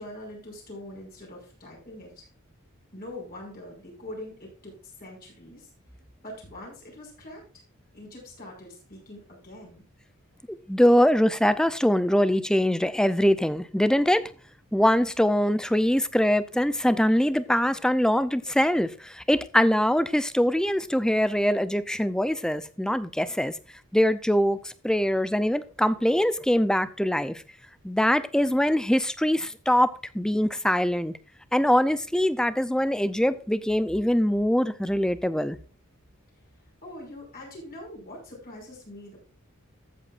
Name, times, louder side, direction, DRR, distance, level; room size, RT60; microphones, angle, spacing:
voice 1, 0.0-2.3 2.9-5.7 6.2-7.4 7.9-9.8 36.8-39.2, left 1 dB, 40° left, 5.6 m, -43 dB
voice 2, 10.5-14.3 14.7-23.5 23.9-27.4 27.8-31.1 31.5-35.6, equal, 5° left, 0.5 m, -23 dB
14.5 x 8.1 x 2.5 m
head